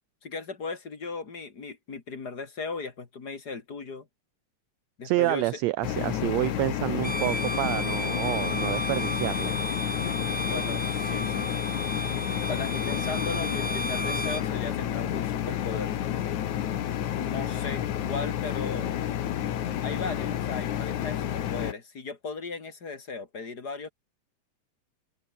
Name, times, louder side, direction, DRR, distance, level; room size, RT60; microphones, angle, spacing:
voice 1, 0.2-4.1 5.0-5.5 10.5-11.5 12.5-15.9 17.2-19.0 19.8-23.9, left 4 dB, 35° left, 2.4 m, -37 dB
voice 2, 5.0-9.6, right 18 dB, 85° right, 1.5 m, -28 dB
sound 1, 5.8-21.7, left 11 dB, 75° left, 2.9 m, -30 dB
Bowed string instrument, 7.0-14.5, right 1 dB, 5° right, 0.7 m, -34 dB
open air
omnidirectional pair, 3.5 m